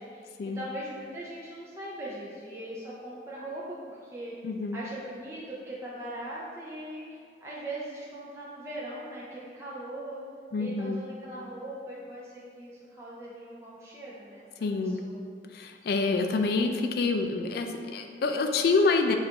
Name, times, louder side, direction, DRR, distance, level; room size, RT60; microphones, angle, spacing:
voice 1, 0.0-4.3 4.7-10.2 10.6-15.2, right 1 dB, 15° right, -7 dB, 0.5 m, -40 dB
voice 2, 4.4-4.8 10.5-11.0 14.6-15.0 15.5-19.1, left 3 dB, 60° left, 5 dB, 0.3 m, -27 dB
6.6 x 2.5 x 2.8 m, 2.3 s
head